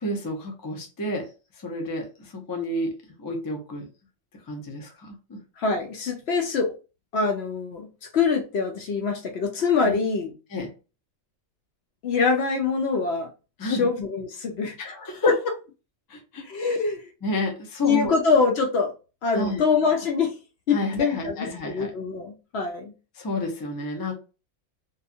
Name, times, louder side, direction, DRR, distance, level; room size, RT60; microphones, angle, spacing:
voice 1, 0.0-1.3 1.6-3.9 4.5-5.4 9.8-9.9 10.5-10.7 13.6-13.9 14.8-15.3 16.1-16.4 17.2-18.1 19.3-19.6 20.7-21.9 23.1-24.1, left 1 dB, 35° left, 0.3 m, -30 dB
voice 2, 5.6-6.7 7.1-7.9 8.1-10.3 12.0-13.3 13.6-14.8 15.2-15.3 16.4-17.1 17.8-18.9 19.2-20.4 20.7-22.9, left 5 dB, 60° left, 0.7 m, -24 dB
2.6 x 2.3 x 2.6 m
omnidirectional pair, 1.5 m